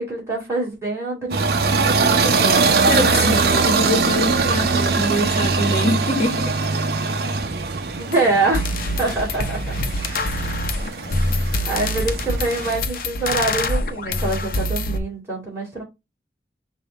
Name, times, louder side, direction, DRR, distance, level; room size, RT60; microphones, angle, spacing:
voice 1, 0.0-2.7 8.0-8.7 9.0-10.4 11.6-15.8, right 2 dB, 15° right, 2.7 m, -25 dB
sound 1, 1.3-12.8, right 4 dB, 60° right, 0.6 m, -22 dB
voice 2, 2.9-6.6 11.2-11.7, equal, 35° left, 1.0 m, -24 dB
sound 2, 8.1-8.2 8.5-15.0, left 1 dB, 50° left, 0.6 m, -25 dB
5.4 x 2.3 x 4.1 m
head